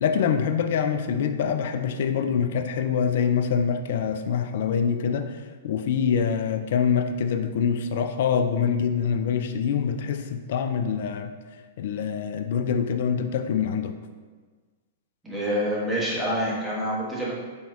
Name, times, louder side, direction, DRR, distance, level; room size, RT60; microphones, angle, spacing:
voice 1, 0.0-11.3 11.8-13.9, left 7 dB, 60° left, 8 dB, 0.3 m, -25 dB
voice 2, 15.2-17.3, equal, 10° right, -7 dB, 1.4 m, -27 dB
4.2 x 4.2 x 2.4 m, 1.4 s
figure-of-eight pair, 105°, 0 cm